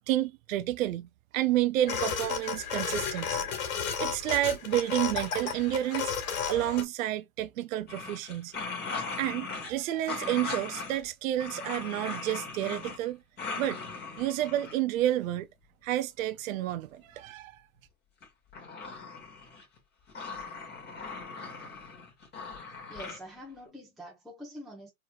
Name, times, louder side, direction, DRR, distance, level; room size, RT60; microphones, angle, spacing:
voice 1, 0.1-1.1 1.3-3.4 4.0-6.1 6.5-8.5 9.2-13.2 13.5-13.8 14.2-15.5 15.8-17.6, right 13 dB, 65° right, 0.5 m, -30 dB
sound 1, 1.9-6.8, left 6 dB, 65° left, 1.8 m, -33 dB
sound 2, 7.9-9.7 10.1-11.0 11.4-13.1 13.4-14.8 18.2-19.8 20.1-23.2, left 4 dB, 20° left, 2.2 m, -39 dB
voice 2, 22.9-24.9, equal, ahead, 0.9 m, -45 dB
4.5 x 3.2 x 2.3 m
hypercardioid pair, 130°, 44 cm